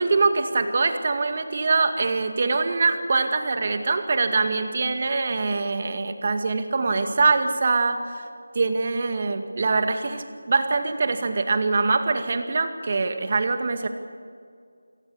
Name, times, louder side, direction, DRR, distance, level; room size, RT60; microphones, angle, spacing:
voice 1, 0.0-8.2 8.5-13.9, right 3 dB, 40° right, 7 dB, 2.1 m, -23 dB
29.5 x 17.0 x 7.0 m, 2.2 s
figure-of-eight pair, 170°, 0 cm